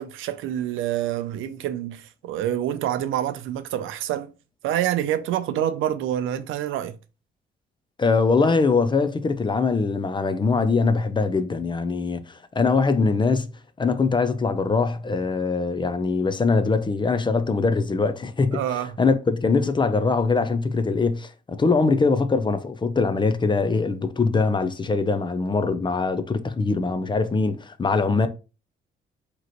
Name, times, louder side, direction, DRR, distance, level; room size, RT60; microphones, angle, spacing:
voice 1, 0.0-4.3 4.6-6.9 18.5-19.0, right 11 dB, 85° right, 0.5 m, -27 dB
voice 2, 8.0-13.5 13.8-18.6 19.0-28.3, left 4 dB, 25° left, 0.5 m, -22 dB
4.8 x 3.0 x 2.9 m
cardioid pair, 90°, 20 cm